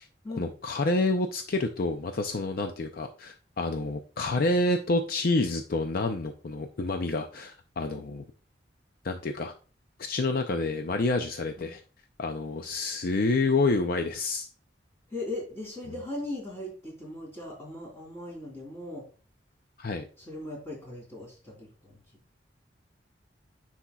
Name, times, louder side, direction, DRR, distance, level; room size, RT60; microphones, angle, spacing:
voice 1, 0.3-8.2 9.0-9.5 10.0-11.8 12.2-14.5 19.8-20.1, left 2 dB, 55° left, 6 dB, 0.5 m, -28 dB
voice 2, 15.1-19.0 20.2-22.0, left 1 dB, 15° left, -3 dB, 3.4 m, -38 dB
9.9 x 4.3 x 2.3 m, 0.38 s
head